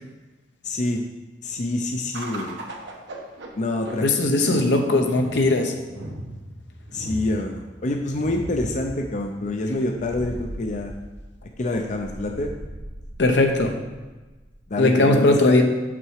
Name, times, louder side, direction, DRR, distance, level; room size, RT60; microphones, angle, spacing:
voice 1, 0.6-1.0 1.4-2.6 3.5-4.1 4.3-4.7 6.9-10.9 11.6-12.5 14.7-15.6, left 2 dB, 45° left, 3 dB, 0.6 m, -27 dB
sound 1, 2.1-14.7, right 1 dB, 90° right, 1.1 m, -38 dB
voice 2, 4.0-5.7 13.2-13.7 14.8-15.6, left 2 dB, 75° left, 4 dB, 0.9 m, -19 dB
6.6 x 6.0 x 4.7 m, 1.2 s
head